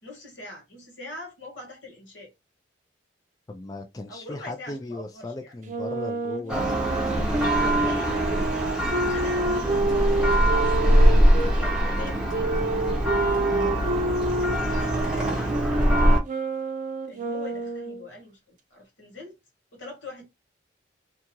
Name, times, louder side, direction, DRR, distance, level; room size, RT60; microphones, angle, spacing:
voice 1, 0.0-2.3 4.1-5.5 7.4-8.4 9.1-12.6 14.6-16.2 17.1-19.4 19.7-20.3, left 2 dB, 85° left, 1.5 m, -43 dB
voice 2, 3.5-8.0 8.3-8.5 13.4-13.8, left 2 dB, 20° left, 0.3 m, -37 dB
Wind instrument woodwind instrument, 5.6-11.5 12.3-18.1, right 2 dB, 40° right, 0.5 m, -28 dB
Church bell, 6.5-16.2, right 1 dB, 5° right, 0.7 m, -23 dB
2.8 x 2.4 x 2.8 m
head